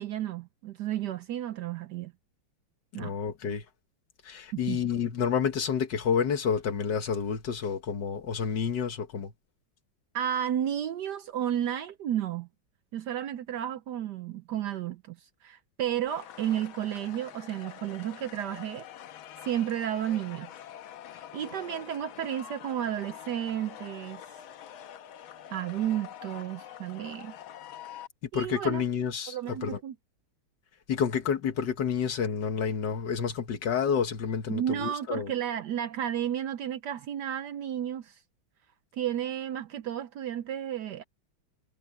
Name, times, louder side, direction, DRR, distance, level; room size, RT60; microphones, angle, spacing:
voice 1, 0.0-2.1 2.9-3.1 4.5-4.8 10.1-12.5 12.9-15.2 15.4-18.9 19.4-20.5 21.2-24.2 25.5-27.3 28.3-28.8 29.3-29.9 34.5-38.2 38.9-41.0, right 10 dB, 70° right, 1.1 m, -32 dB
voice 2, 3.0-3.6 4.2-9.3 28.3-29.8 30.9-35.3, left 7 dB, 60° left, 1.9 m, -29 dB
sound 1, 16.1-28.1, left 10 dB, 85° left, 1.7 m, -46 dB
omnidirectional pair, 2.2 m